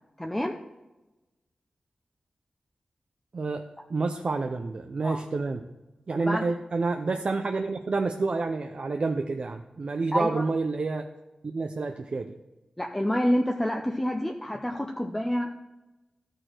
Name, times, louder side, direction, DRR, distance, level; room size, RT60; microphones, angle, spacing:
voice 1, 0.2-0.6 5.0-5.2 6.1-6.4 10.1-10.4 12.8-15.5, equal, 10° left, 2 dB, 0.6 m, -28 dB
voice 2, 3.3-5.6 6.1-11.1 11.4-12.4, right 3 dB, 55° right, 5 dB, 0.5 m, -29 dB
13.0 x 4.5 x 4.5 m, 1.0 s
wide cardioid pair, 90°, 2 cm